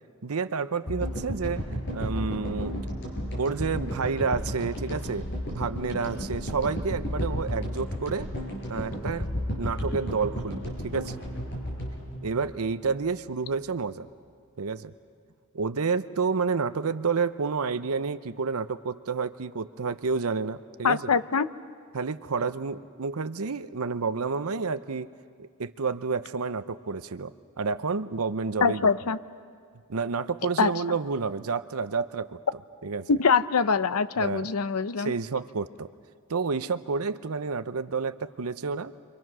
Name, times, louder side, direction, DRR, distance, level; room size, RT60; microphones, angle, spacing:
voice 1, 0.2-2.8 3.4-8.3 8.7-9.3 9.6-11.2 12.2-14.1 14.6-14.9 15.5-21.1 21.9-25.1 25.4-28.9 29.9-32.4 32.8-33.1 34.2-34.5 35.0-35.9 36.3-38.9, right 4 dB, 75° right, 12 dB, 0.7 m, -30 dB
sound 1, 0.9-13.2, equal, 55° left, 6.0 m, -33 dB
voice 2, 20.8-21.5 28.6-29.2 30.6-31.0 33.1-35.1, left 5 dB, 85° left, 14 dB, 0.7 m, -24 dB
30.0 x 25.0 x 6.2 m, 2.1 s
head